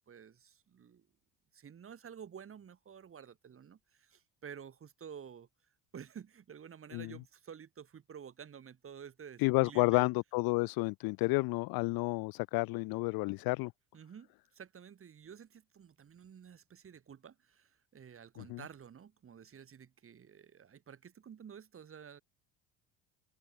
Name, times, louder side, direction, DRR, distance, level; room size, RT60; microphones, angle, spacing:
voice 1, 0.1-1.1 1.5-5.5 5.9-10.1 13.9-22.2, right 7 dB, 30° right, 1.6 m, -51 dB
voice 2, 9.4-13.7 18.4-18.6, left 25 dB, 60° left, 0.5 m, -31 dB
supercardioid pair, 85°, 41 cm